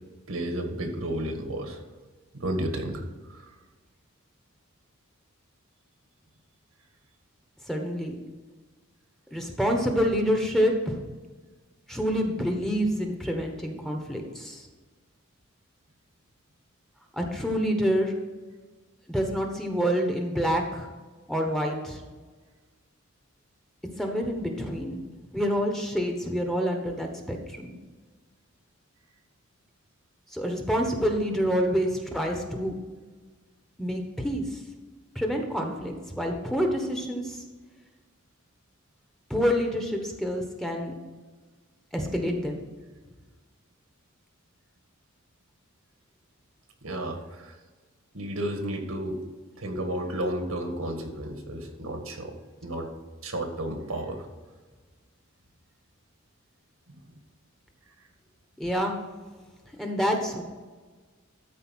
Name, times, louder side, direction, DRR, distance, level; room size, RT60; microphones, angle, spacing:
voice 1, 0.3-1.8 2.4-3.0 3.3-3.5 46.8-47.5 48.1-49.2 49.6-52.3 52.6-52.9 53.2-54.3, right 1 dB, 80° right, 4 dB, 1.8 m, -32 dB
voice 2, 7.7-8.2 9.3-11.0 11.9-14.7 17.1-18.1 19.1-20.9 21.3-22.0 24.0-25.0 25.3-27.7 30.3-32.7 33.8-34.6 35.1-37.4 39.3-41.0 41.9-42.6 58.6-58.9 59.8-60.4, equal, ahead, 2 dB, 1.2 m, -27 dB
13.0 x 4.7 x 6.3 m, 1.4 s
head